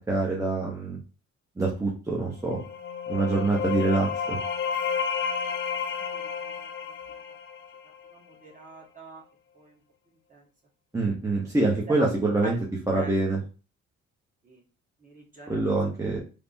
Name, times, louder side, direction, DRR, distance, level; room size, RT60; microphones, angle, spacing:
voice 1, 0.1-1.0 1.6-2.6 3.1-4.4 10.9-12.5 12.9-13.4 15.5-16.2, right 3 dB, 10° right, -4 dB, 0.7 m, -25 dB
sound 1, 2.4-8.1, left 6 dB, 40° left, 0.4 m, -31 dB
voice 2, 5.5-6.5 6.8-6.9 8.1-9.2 9.5-9.8 10.3-10.4 11.5-12.1 12.4-12.6 12.9-13.1 14.4-14.6 15.0-15.7, right 3 dB, 25° right, -3 dB, 1.3 m, -44 dB
3.2 x 2.1 x 2.6 m, 0.35 s
cardioid pair, 90°, 30 cm